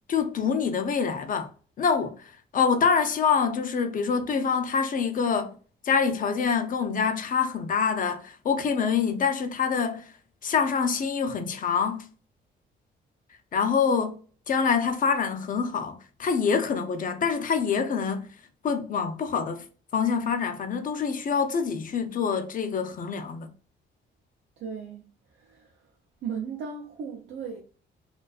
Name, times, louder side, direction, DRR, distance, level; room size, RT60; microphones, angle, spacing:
voice 1, 0.1-1.5 1.8-5.6 5.8-10.1 10.4-12.1 13.5-14.2 14.5-18.3 18.6-19.7 19.9-23.5, left 6 dB, 45° left, 0.4 m, -26 dB
voice 2, 24.6-25.0 25.4-25.7 26.2-27.6, right 6 dB, 70° right, 0.5 m, -36 dB
2.4 x 2.3 x 2.3 m
cardioid pair, 90°, 20 cm